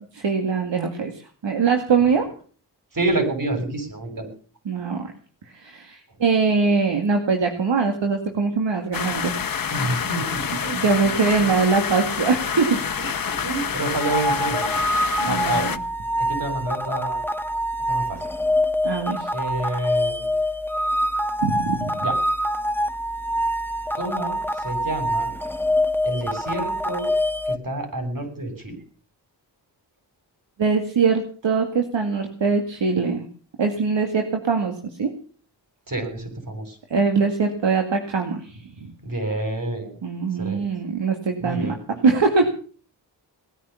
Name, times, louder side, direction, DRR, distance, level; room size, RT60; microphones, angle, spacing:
voice 1, 0.1-2.3 4.7-5.1 5.5-9.3 9.8-10.1 10.6-13.5 15.2-15.8 18.8-19.3 21.4-22.0 30.6-33.3 33.6-35.1 36.9-38.9 40.0-42.5, right 5 dB, 70° right, 4 dB, 2.3 m, -22 dB
voice 2, 2.9-4.3 9.7-10.6 11.0-11.5 13.0-14.8 15.2-15.7 16.3-17.2 17.9-18.2 19.3-20.3 22.0-22.2 23.9-25.3 26.1-27.1 27.5-28.8 35.9-36.8 39.0-39.9 40.4-40.6 41.4-41.8, right 2 dB, 45° right, 6 dB, 7.3 m, -28 dB
sound 1, 8.9-15.8, left 7 dB, 50° left, 1.2 m, -27 dB
sound 2, 14.0-27.6, equal, 5° left, 1.3 m, -25 dB
19.5 x 10.0 x 7.1 m, 0.42 s
cardioid pair, 60°, 45 cm